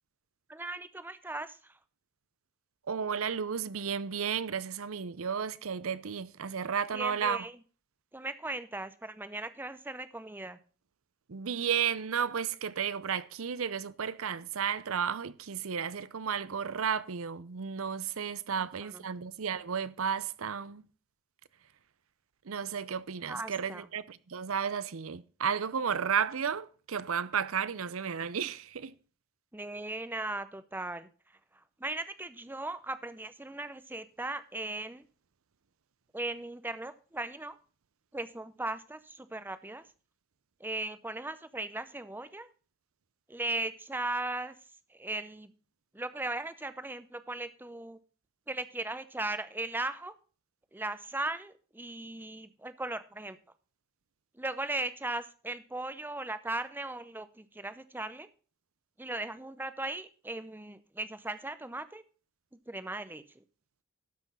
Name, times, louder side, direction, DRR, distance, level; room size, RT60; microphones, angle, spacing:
voice 1, 0.5-1.8 6.9-7.6 8.1-10.6 18.6-19.0 23.3-23.9 29.5-35.0 36.1-37.6 38.1-39.8 40.6-42.5 43.3-44.6 44.9-45.5 45.9-48.0 48.5-50.1 50.7-53.4 54.3-58.3 59.0-62.0 62.7-63.4, right 2 dB, 10° right, 0.6 m, -38 dB
voice 2, 2.9-7.4 11.3-20.8 22.5-28.9, right 7 dB, 70° right, 0.6 m, -33 dB
12.5 x 6.1 x 5.5 m
head